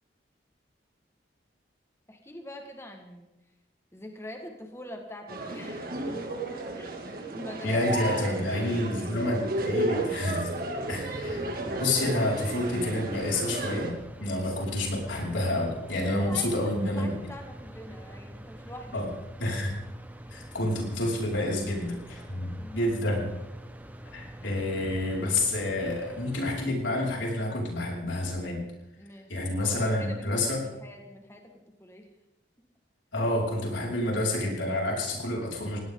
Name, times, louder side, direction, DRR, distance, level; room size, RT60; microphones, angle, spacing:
voice 1, 2.1-3.3 3.9-6.2 6.8-7.0 7.3-7.8 8.2-9.3 16.2-19.0 20.2-20.4 22.6-22.9 29.0-32.1, left 1 dB, 15° left, 3 dB, 1.7 m, -44 dB
sound 1, 5.3-13.9, right 2 dB, 50° right, 2.5 m, -33 dB
voice 2, 7.6-10.5 10.9-17.1 18.9-19.1 19.4-19.7 20.3-23.3 24.1-28.6 29.3-30.6 33.1-35.8, left 1 dB, 90° left, -2 dB, 5.6 m, -29 dB
sound 2, 10.8-26.7, right 1 dB, 10° right, 1.3 m, -45 dB
21.0 x 17.0 x 3.9 m, 0.96 s
head